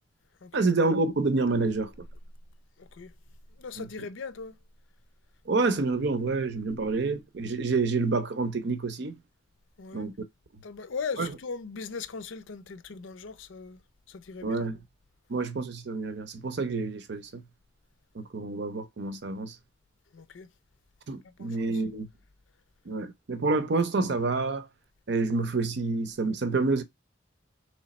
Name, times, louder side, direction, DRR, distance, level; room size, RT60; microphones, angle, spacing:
voice 1, 0.5-1.9 3.8-3.9 5.5-9.2 9.9-10.1 11.2-11.3 14.4-14.8 15.3-17.4 18.1-19.5 21.1-22.1 22.9-24.7 25.1-26.8, right 3 dB, 60° right, 0.6 m, -28 dB
voice 2, 2.8-3.1 3.6-4.6 9.8-10.1 10.6-13.8 14.1-14.7 20.1-20.5 21.4-21.8, left 5 dB, 80° left, 0.5 m, -39 dB
3.2 x 3.1 x 4.1 m
head